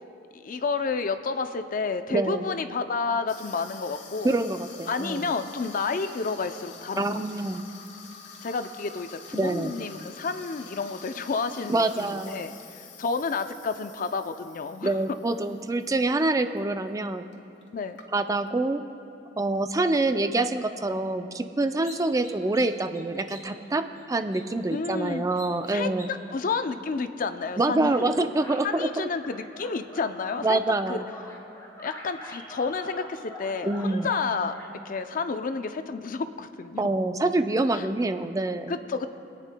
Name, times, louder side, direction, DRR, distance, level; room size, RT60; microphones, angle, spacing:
voice 1, 0.3-4.4 4.9-7.1 8.4-12.5 13.0-15.0 17.7-18.0 24.7-25.2 25.7-28.3 28.6-30.6 30.9-31.0 31.8-34.6 34.8-36.8 37.7-37.9 38.7-39.1, left 4 dB, 50° left, 9 dB, 0.5 m, -30 dB
voice 2, 2.1-2.4 4.2-5.3 7.0-7.6 9.4-9.8 11.7-12.5 14.8-17.3 18.1-18.8 19.4-26.1 27.6-29.1 30.4-31.1 33.6-34.1 36.8-38.7, right 2 dB, 20° right, 8 dB, 0.4 m, -26 dB
Water tap faucet / Sink (filling or washing), 3.3-16.0 16.3-16.6 17.3-17.4 17.6-18.5, left 5 dB, 75° left, 1.0 m, -47 dB
sound 1, 21.8-27.0 27.4-28.9 29.2-35.0, left 1 dB, 20° left, 1.9 m, -46 dB
26.5 x 9.1 x 2.2 m, 2.8 s
head